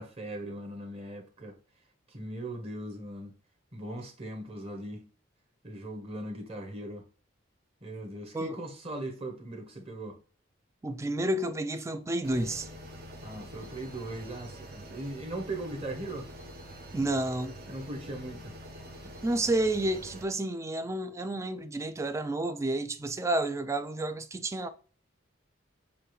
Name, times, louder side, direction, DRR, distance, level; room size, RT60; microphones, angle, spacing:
voice 1, 0.0-1.6 2.1-3.4 3.7-5.1 5.6-7.0 7.8-10.2 13.2-16.3 17.7-18.5, right 1 dB, 30° right, 1.1 m, -39 dB
voice 2, 10.8-12.7 16.9-17.6 19.2-24.7, right 1 dB, 15° right, 0.3 m, -30 dB
sound 1, 12.2-20.2, equal, 50° right, 0.9 m, -46 dB
6.9 x 2.5 x 3.1 m
head